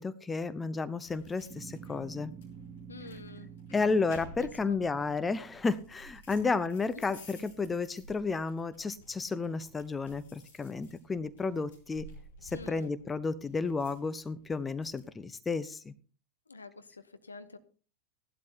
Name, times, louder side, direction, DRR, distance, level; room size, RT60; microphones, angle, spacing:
voice 1, 0.0-2.3 3.7-12.1 12.4-15.9, left 4 dB, 15° left, 14 dB, 0.7 m, -32 dB
sound 1, 1.0-15.1, left 1 dB, 60° left, 5.5 m, -54 dB
sound 2, 1.5-6.1, right 7 dB, 10° right, 1.3 m, -49 dB
voice 2, 2.9-3.5 4.4-4.8 6.9-7.0 12.5-12.9 16.5-17.6, left 3 dB, 75° left, 10 dB, 1.1 m, -47 dB
17.0 x 11.5 x 2.9 m, 0.37 s
figure-of-eight pair, 90°, 0 cm